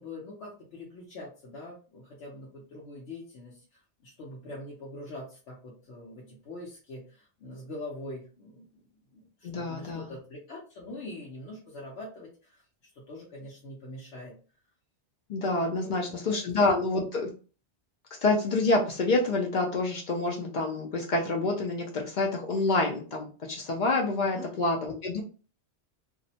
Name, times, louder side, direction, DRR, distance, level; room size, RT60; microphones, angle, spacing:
voice 1, 0.0-12.6 12.9-14.3 15.6-16.7 24.2-24.5, left 1 dB, 80° left, -4 dB, 1.0 m, -44 dB
voice 2, 9.4-10.1 15.3-17.3 18.2-25.2, left 2 dB, 60° left, 0 dB, 0.5 m, -27 dB
2.6 x 2.0 x 2.7 m, 0.37 s
omnidirectional pair, 1.2 m